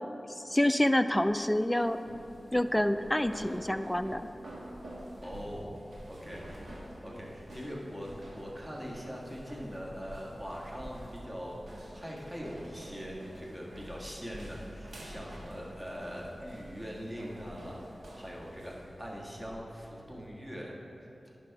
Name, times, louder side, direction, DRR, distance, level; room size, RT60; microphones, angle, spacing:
voice 1, 0.5-2.0 2.5-4.3, left 1 dB, 15° left, 10 dB, 0.3 m, -27 dB
sound 1, 1.1-20.3, right 1 dB, 90° right, 1.3 m, -48 dB
voice 2, 5.2-5.7 6.1-6.7 7.0-20.8, equal, 20° right, -3 dB, 1.5 m, -42 dB
10.5 x 3.5 x 5.7 m, 3.0 s
cardioid pair, 40°, 0 cm